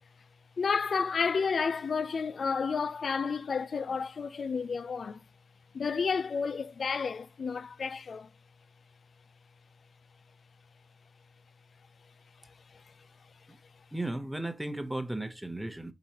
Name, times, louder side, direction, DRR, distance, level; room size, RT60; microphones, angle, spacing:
voice 1, 0.6-5.2 5.7-8.3, left 5 dB, 70° left, 0.3 m, -31 dB
voice 2, 13.9-15.9, right 1 dB, 15° right, 0.9 m, -35 dB
4.5 x 3.9 x 2.9 m
supercardioid pair, 40°, 0 cm